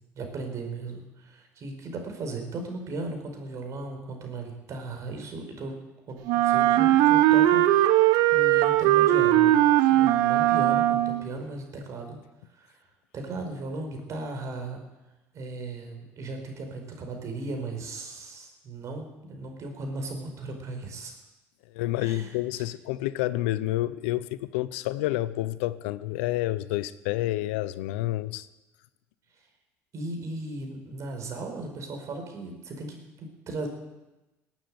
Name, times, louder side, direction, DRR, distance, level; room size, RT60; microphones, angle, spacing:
voice 1, 0.1-5.7 6.1-9.6 10.0-12.2 12.6-12.8 13.1-14.8 15.3-21.1 22.0-22.6 29.9-33.7, right 2 dB, 55° right, 4 dB, 4.9 m, -37 dB
Wind instrument woodwind instrument, 6.3-11.3, right 14 dB, 75° right, 0.9 m, -20 dB
voice 2, 21.7-28.5, left 16 dB, 85° left, 16 dB, 0.7 m, -29 dB
19.5 x 9.2 x 7.8 m, 1.0 s
supercardioid pair, 75°, 6 cm